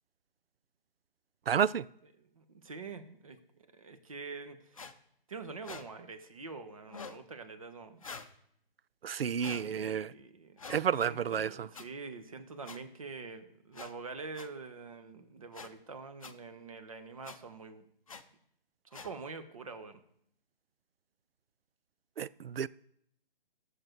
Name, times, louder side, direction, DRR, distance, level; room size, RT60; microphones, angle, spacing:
voice 1, 1.5-1.8 9.0-10.1 10.7-11.7 22.2-22.7, right 8 dB, 80° right, 0.5 m, -31 dB
voice 2, 2.2-3.4 3.7-4.9 5.3-8.0 9.4-10.8 11.0-17.9 18.8-20.0, right 4 dB, 35° right, 1.0 m, -45 dB
sound 1, 4.7-4.9 5.6-5.8 6.9-7.2 8.0-8.3 9.4-9.6 10.6-10.8 11.7-11.8 12.6-12.8 13.7-13.9 14.3-14.5 15.5-15.7 16.2-16.3 17.2-17.4 18.1-18.2 18.9-19.1, left 5 dB, 35° left, 0.7 m, -45 dB
13.5 x 6.7 x 4.5 m
hypercardioid pair, 175°, 29 cm